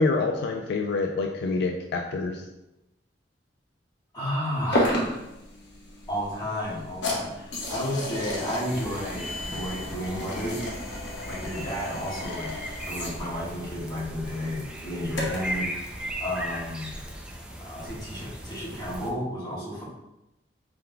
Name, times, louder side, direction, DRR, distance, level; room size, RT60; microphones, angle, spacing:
voice 1, 0.0-2.4, left 3 dB, 60° left, 2 dB, 0.3 m, -26 dB
voice 2, 4.1-5.2 6.1-10.6 11.2-12.5 12.8-15.7 16.2-17.0 17.7-19.8, equal, 20° left, -7 dB, 1.4 m, -32 dB
sound 1, 4.7-15.6, left 1 dB, 80° left, 1.0 m, -33 dB
sound 2, 8.7-19.1, equal, 5° right, 0.4 m, -38 dB
4.4 x 3.7 x 2.2 m, 0.93 s
head